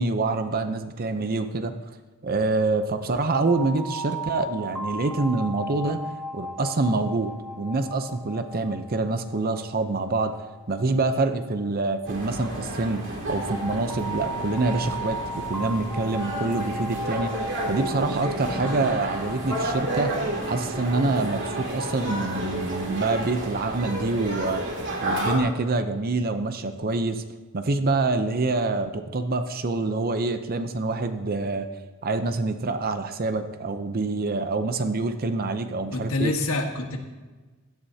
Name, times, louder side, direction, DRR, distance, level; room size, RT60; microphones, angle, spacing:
voice 1, 0.0-1.7 2.2-6.0 6.3-10.3 10.7-17.3 17.7-24.6 25.0-27.2 27.5-31.7 32.0-36.3, right 3 dB, 45° right, 9 dB, 0.7 m, -26 dB
sound 1, 3.5-12.3 13.5-22.7, equal, ahead, 1.3 m, -37 dB
sound 2, 12.1-25.4, right 1 dB, 60° right, 2.5 m, -31 dB
voice 2, 35.9-37.0, left 2 dB, 70° left, 3 dB, 1.5 m, -26 dB
16.5 x 12.0 x 2.8 m, 1.3 s
head